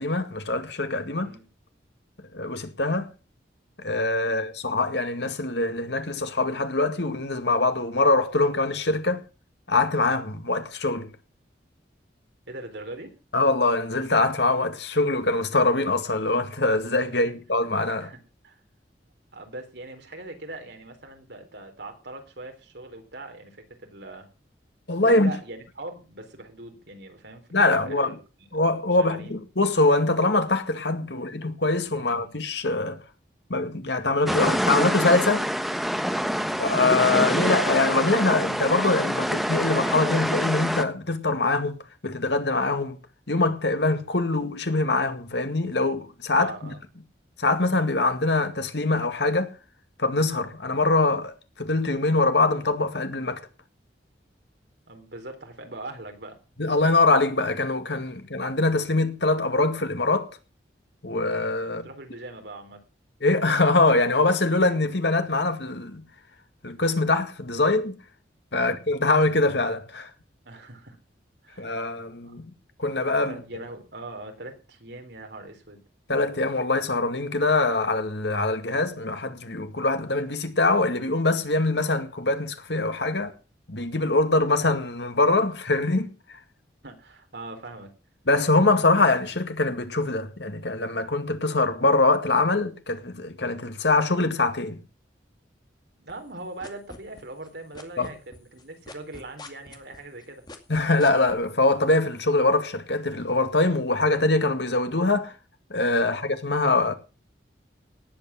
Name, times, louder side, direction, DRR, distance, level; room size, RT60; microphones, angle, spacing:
voice 1, 0.0-1.3 2.3-3.1 3.8-9.2 9.7-11.1 13.3-18.1 24.9-25.3 27.5-28.1 28.5-33.0 33.5-35.5 36.6-41.8 42.0-43.0 43.3-46.7 47.4-49.5 50.0-53.4 56.6-60.3 61.0-61.9 63.2-66.0 66.6-68.0 68.5-70.1 71.6-72.4 72.8-73.4 76.1-83.3 83.7-86.1 88.3-94.8 98.0-98.1 100.7-105.3 105.7-106.9, left 2 dB, 70° left, 2.0 m, -23 dB
voice 2, 12.5-13.1 17.1-17.2 18.0-18.2 18.4-18.6 19.3-23.6 23.8-24.3 25.0-28.2 28.5-28.7 29.0-29.4 31.1-31.3 31.9-32.4 36.2-36.6 46.4-46.8 54.9-56.4 61.7-62.8 68.6-68.8 70.5-71.0 71.4-72.0 72.2-72.3 73.3-75.8 86.8-87.9 96.0-100.4 106.0-106.3, right 2 dB, 70° right, 3.9 m, -41 dB
sound 1, 34.3-40.8, equal, ahead, 1.0 m, -26 dB
sound 2, 96.1-97.5 97.7-101.3, left 2 dB, 25° left, 2.3 m, -43 dB
18.5 x 8.5 x 5.9 m
head